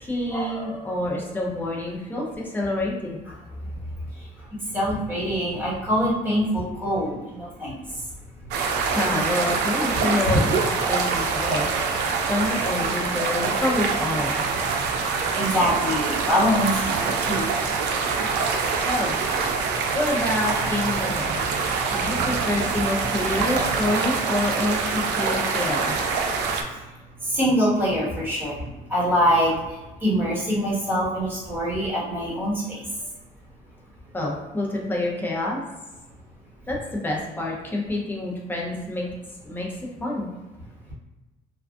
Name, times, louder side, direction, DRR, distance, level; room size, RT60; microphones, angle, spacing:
voice 1, 0.0-3.2 8.8-14.4 18.8-19.2 19.9-21.4 21.7-26.0 34.1-35.6 36.7-39.1 39.4-39.7 40.0-40.3, left 1 dB, 10° left, -3 dB, 0.7 m, -27 dB
voice 2, 4.7-7.7 15.3-16.9 17.2-17.4 27.2-28.6 28.9-29.5 30.0-32.8, equal, 10° right, -8 dB, 1.4 m, -23 dB
sound 1, 8.5-26.6, right 5 dB, 80° right, 0.5 m, -25 dB
3.4 x 2.3 x 2.4 m, 1.1 s
cardioid pair, 110°, 17 cm